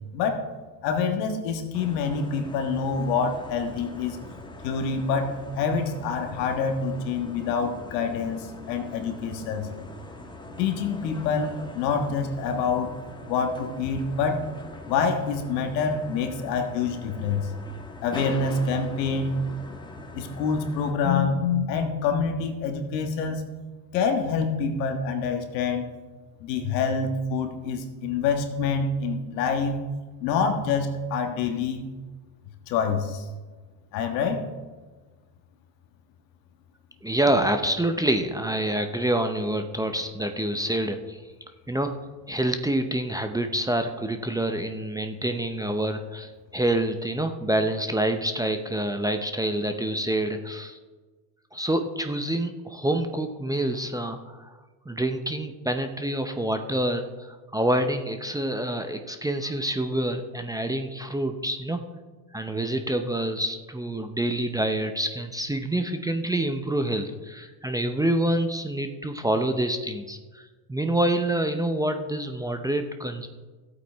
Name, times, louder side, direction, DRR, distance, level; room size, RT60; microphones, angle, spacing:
voice 1, 0.1-0.4 0.8-4.2 4.6-9.7 10.6-12.9 13.3-14.5 14.9-17.5 18.0-19.4 20.1-23.4 23.9-25.8 26.4-29.8 30.2-31.8 32.7-33.2 33.9-34.4, left 5 dB, 80° left, 5 dB, 1.6 m, -26 dB
sound 1, 1.7-20.9, left 2 dB, 10° left, 1.5 m, -42 dB
voice 2, 37.0-41.2 41.7-41.9 42.3-50.8 51.5-54.5 54.9-61.8 62.3-70.4 70.7-73.3, right 1 dB, 5° right, 6 dB, 0.7 m, -27 dB
14.5 x 8.5 x 3.5 m, 1.4 s
supercardioid pair, 95°, 50 cm